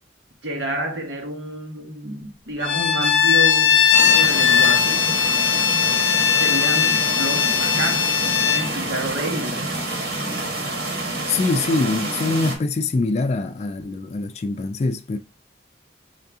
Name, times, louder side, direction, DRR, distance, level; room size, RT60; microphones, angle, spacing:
voice 1, 0.4-5.1 6.3-9.6, right 1 dB, 85° right, 1.3 m, -29 dB
Bowed string instrument, 2.6-8.7, left 8 dB, 85° left, 0.7 m, -18 dB
sound 1, 3.9-12.5, right 2 dB, 60° right, 1.5 m, -28 dB
voice 2, 11.2-15.2, left 3 dB, 35° left, 0.3 m, -23 dB
5.6 x 2.7 x 3.5 m
head